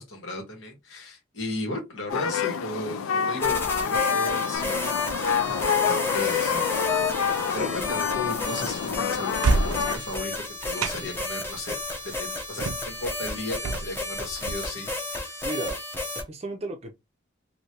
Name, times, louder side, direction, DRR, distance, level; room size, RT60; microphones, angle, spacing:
voice 1, 0.0-6.6 6.9-11.8 12.0-15.4, left 2 dB, 75° left, 1.6 m, -36 dB
sound 1, 2.1-10.0, left 7 dB, 90° left, 0.4 m, -27 dB
sound 2, 3.4-16.2, left 2 dB, 10° left, 0.7 m, -32 dB
sound 3, 4.5-14.5, right 3 dB, 80° right, 0.4 m, -33 dB
voice 2, 15.4-15.8 16.1-16.9, right 2 dB, 30° right, 0.5 m, -34 dB
3.2 x 2.7 x 2.8 m
head